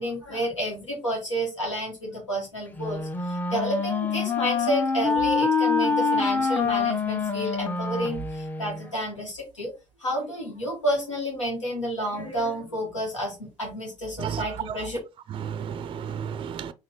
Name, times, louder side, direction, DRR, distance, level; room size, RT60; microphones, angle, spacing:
voice 1, 0.0-9.7 10.0-15.0, equal, 85° left, 1.6 m, -30 dB
Wind instrument woodwind instrument, 2.8-8.9, left 4 dB, 10° left, 0.7 m, -26 dB
voice 2, 14.2-14.8 15.3-16.7, right 8 dB, 35° right, 0.4 m, -32 dB
4.2 x 2.7 x 3.6 m
figure-of-eight pair, 50°, 15 cm